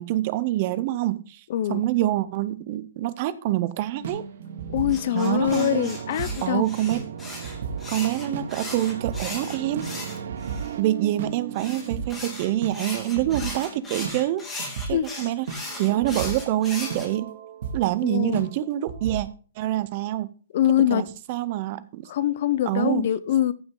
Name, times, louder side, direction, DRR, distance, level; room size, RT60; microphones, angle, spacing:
voice 1, 0.0-4.3 5.1-5.9 6.4-7.0 7.9-9.9 10.8-17.3 17.7-19.3 19.6-20.3 20.8-22.1 22.7-23.1, right 14 dB, 35° right, 16 dB, 0.6 m, -26 dB
voice 2, 1.5-1.8 4.7-6.6 14.9-15.0 18.0-18.4 20.5-21.0 22.1-23.5, left 11 dB, 45° left, 17 dB, 0.6 m, -23 dB
sound 1, 4.0-14.2 14.6-14.9 15.5-17.9 18.2-18.5 18.9-19.2, right 6 dB, 55° right, 1.9 m, -36 dB
sound 2, 4.9-10.7 11.5-17.1, left 2 dB, 10° left, 2.5 m, -37 dB
sound 3, 5.4-10.8, right 7 dB, 70° right, 0.8 m, -38 dB
14.5 x 5.9 x 3.8 m, 0.37 s
hypercardioid pair, 165°, 0 cm